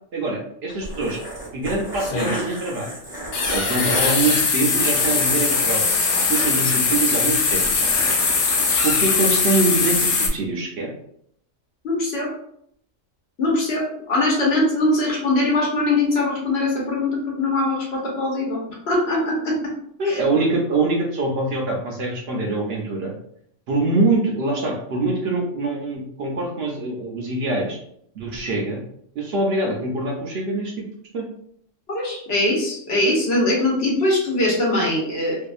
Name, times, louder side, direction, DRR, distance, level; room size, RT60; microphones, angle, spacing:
voice 1, 0.1-1.2 1.5-3.0 3.5-5.8 6.1-7.7 8.8-10.9 20.0-23.1 23.7-27.8 28.1-28.8 29.2-30.7 31.1-31.3, right 2 dB, 60° right, -1 dB, 0.8 m, -24 dB
sound 1, 0.7-8.9, equal, 10° left, 1.1 m, -34 dB
sound 2, 0.8-0.9 2.0-2.4 3.3-10.3, left 4 dB, 75° left, 0.4 m, -21 dB
voice 2, 11.8-12.3 13.4-18.6 18.9-19.7 20.0-20.2 31.9-35.4, left 2 dB, 60° left, -3 dB, 1.0 m, -21 dB
2.7 x 2.4 x 2.3 m, 0.69 s
omnidirectional pair, 1.3 m